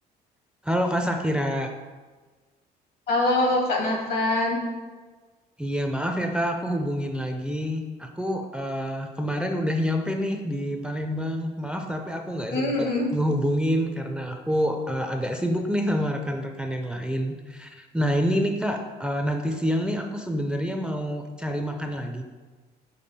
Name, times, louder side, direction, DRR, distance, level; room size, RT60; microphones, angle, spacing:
voice 1, 0.6-1.7 5.6-22.2, equal, 5° right, 4 dB, 0.4 m, -27 dB
voice 2, 3.1-4.6 12.5-13.1, left 2 dB, 65° left, 1 dB, 1.6 m, -23 dB
5.3 x 4.5 x 4.2 m, 1.4 s
cardioid pair, 110°, 17 cm